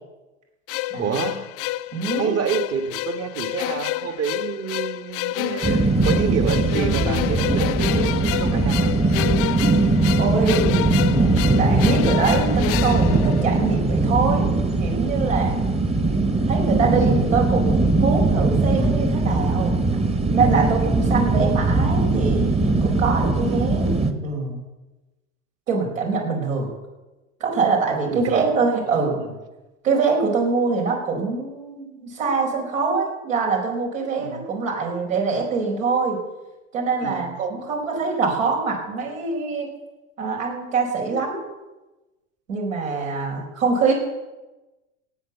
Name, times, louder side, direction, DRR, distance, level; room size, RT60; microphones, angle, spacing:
sound 1, 0.7-13.9, left 15 dB, 35° left, 0.5 m, -29 dB
voice 1, 1.0-1.5 2.2-9.0 23.4-23.8 28.1-28.5 28.9-29.3 34.2-34.5 37.0-37.3, right 7 dB, 40° right, 8 dB, 1.9 m, -28 dB
voice 2, 1.9-2.4 10.2-15.6 16.5-19.8 20.3-23.9 24.2-24.6 25.7-26.7 27.4-29.2 29.8-36.2 36.7-39.7 40.2-41.4 42.5-43.9, right 4 dB, 75° right, 0 dB, 5.1 m, -24 dB
sound 2, 5.6-24.1, right 2 dB, 15° right, 1.4 m, -20 dB
18.0 x 7.9 x 7.1 m, 1.1 s
hypercardioid pair, 90°, 40 cm